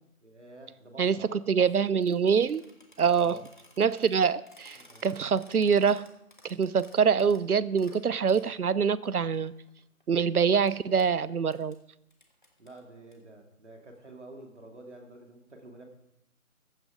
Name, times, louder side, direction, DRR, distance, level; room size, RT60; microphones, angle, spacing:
voice 1, 0.2-1.7 3.2-3.4 4.8-5.1 12.6-15.8, right 2 dB, 50° right, 2 dB, 2.6 m, -49 dB
voice 2, 1.0-2.6 3.0-3.4 3.8-6.0 6.4-9.5 10.1-11.8, right 6 dB, 80° right, 19 dB, 0.7 m, -25 dB
sound 1, 2.0-8.5 9.0-9.1 9.3-10.2 10.6-10.7 11.0-11.1 11.5-11.7 12.1-13.1, left 1 dB, 35° left, 1.4 m, -56 dB
15.0 x 9.4 x 5.0 m, 0.80 s
figure-of-eight pair, 180°, 44 cm